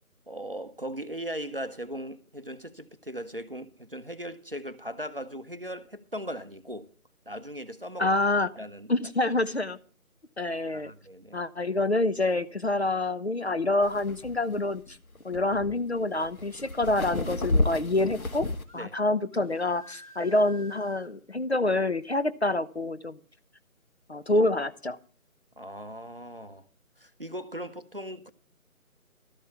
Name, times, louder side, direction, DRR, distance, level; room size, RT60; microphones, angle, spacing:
voice 1, 0.3-6.9 7.3-8.1 8.5-8.9 10.5-11.4 18.7-19.0 25.6-26.6 27.0-28.3, equal, 40° right, 0.6 m, -38 dB
voice 2, 8.0-8.5 8.9-9.8 10.4-10.9 11.3-15.0 15.2-18.5 18.7-23.2 24.1-25.0, left 2 dB, 50° left, 0.6 m, -27 dB
sound 1, 13.8-18.6, left 2 dB, 70° left, 1.5 m, -31 dB
sound 2, 18.6-18.9 19.3-21.1, equal, 25° left, 1.1 m, -50 dB
12.5 x 5.3 x 8.3 m
figure-of-eight pair, 160°, 44 cm